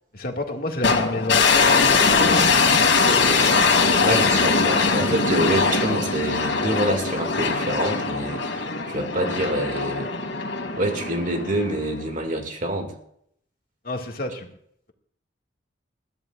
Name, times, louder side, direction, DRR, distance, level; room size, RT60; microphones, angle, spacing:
voice 1, 0.1-3.3 13.8-14.5, left 2 dB, 55° left, 2 dB, 2.2 m, -30 dB
sound 1, 0.8-12.1, left 4 dB, 85° left, 2.6 m, -21 dB
voice 2, 4.0-10.1 10.8-12.9, right 1 dB, 45° right, 4 dB, 2.3 m, -26 dB
22.0 x 14.0 x 2.5 m, 0.68 s
head